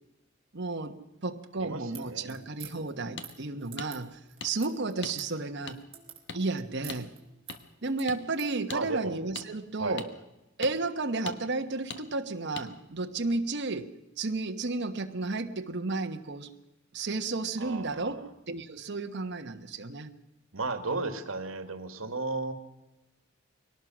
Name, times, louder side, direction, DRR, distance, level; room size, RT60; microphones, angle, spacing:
voice 1, 0.5-5.8 6.3-7.1 7.8-10.0 10.6-16.5 16.9-20.1, right 3 dB, 55° right, 6 dB, 1.3 m, -33 dB
voice 2, 1.5-2.4 8.7-9.2 9.8-10.1 17.6-18.3 20.5-22.5, right 3 dB, 75° right, 8 dB, 2.1 m, -34 dB
sound 1, 1.9-8.5, right 8 dB, 30° right, 3.8 m, -49 dB
sound 2, 3.2-3.3 3.8-3.9 4.4-4.5 5.0-5.2 5.7-5.8 6.3-6.4 6.9-7.0 7.5-7.6 8.1-8.2 8.7-8.8 9.4-9.5 10.0-10.1 10.6-10.7 11.3-11.4 11.9-12.0 12.6-12.7, left 5 dB, 60° left, 1.5 m, -39 dB
23.0 x 18.5 x 6.2 m, 0.98 s
head